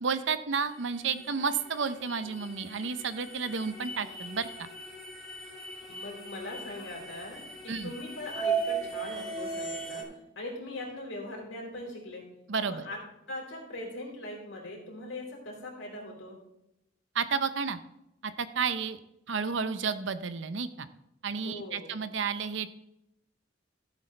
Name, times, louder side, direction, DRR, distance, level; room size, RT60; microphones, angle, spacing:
voice 1, 0.0-4.7 7.7-7.9 12.5-12.8 17.1-17.8 18.2-19.0 19.3-20.9 21.2-22.7, right 5 dB, 70° right, 12 dB, 0.7 m, -31 dB
sound 1, 0.7-10.0, right 4 dB, ahead, 3.4 m, -38 dB
voice 2, 5.9-10.0 10.3-12.2 12.7-13.0 13.3-16.4 21.4-21.9, left 1 dB, 80° left, -1 dB, 4.0 m, -41 dB
15.0 x 8.3 x 3.3 m, 0.85 s
head